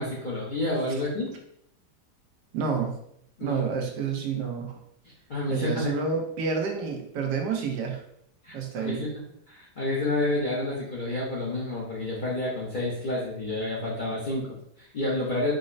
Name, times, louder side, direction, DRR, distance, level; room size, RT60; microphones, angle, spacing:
voice 1, 0.0-1.3 3.4-3.6 5.3-6.0 8.4-15.5, left 2 dB, 50° left, -7 dB, 0.6 m, -29 dB
voice 2, 2.5-3.0 3.4-4.8 5.5-8.0 8.5-9.0, right 5 dB, 85° right, 3 dB, 1.2 m, -29 dB
5.0 x 2.0 x 2.5 m, 0.73 s
omnidirectional pair, 1.8 m